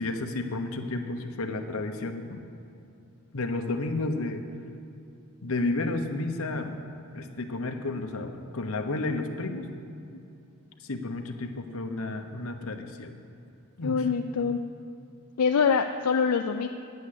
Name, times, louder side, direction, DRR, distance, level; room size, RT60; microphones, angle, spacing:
voice 1, 0.0-2.4 3.3-4.4 5.4-6.8 7.1-9.7 10.8-13.2 13.8-14.0, left 2 dB, 70° left, 5 dB, 1.0 m, -31 dB
voice 2, 13.8-14.6 15.4-16.7, left 6 dB, 85° left, 6 dB, 0.4 m, -24 dB
9.7 x 8.2 x 8.3 m, 2.6 s
head